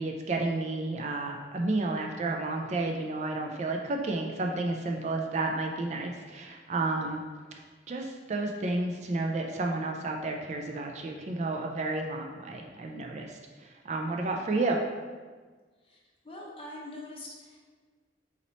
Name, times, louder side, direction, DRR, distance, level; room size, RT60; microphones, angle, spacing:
voice 1, 0.0-7.2 7.9-14.8, right 2 dB, 40° right, 2 dB, 0.3 m, -31 dB
voice 2, 16.2-17.6, left 1 dB, 30° left, -3 dB, 0.8 m, -43 dB
4.1 x 3.0 x 4.0 m, 1.4 s
head